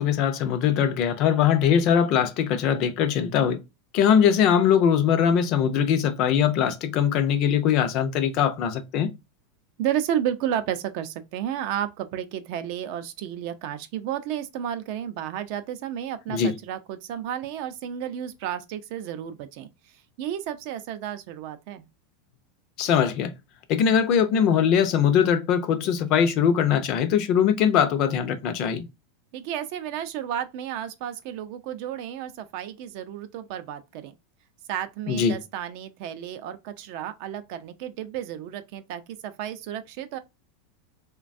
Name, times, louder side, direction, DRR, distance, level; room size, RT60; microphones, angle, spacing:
voice 1, 0.0-3.6 3.9-9.1 16.3-16.5 22.8-23.3 23.7-28.9 35.1-35.3, left 8 dB, 40° left, 0.4 m, -21 dB
voice 2, 9.8-19.7 20.2-21.9 29.3-34.1 34.7-40.2, right 10 dB, 55° right, 0.4 m, -32 dB
3.2 x 2.2 x 2.5 m
supercardioid pair, 150°, 0 cm